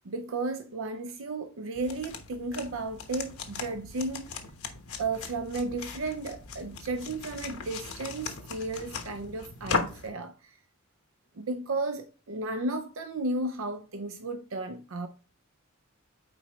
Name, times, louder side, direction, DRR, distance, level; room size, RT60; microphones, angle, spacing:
voice 1, 0.0-4.3 5.0-10.6 11.4-15.1, right 2 dB, 65° right, 0.6 m, -34 dB
sound 1, 1.8-10.1, left 4 dB, 85° left, 1.1 m, -38 dB
8.7 x 4.3 x 3.0 m
head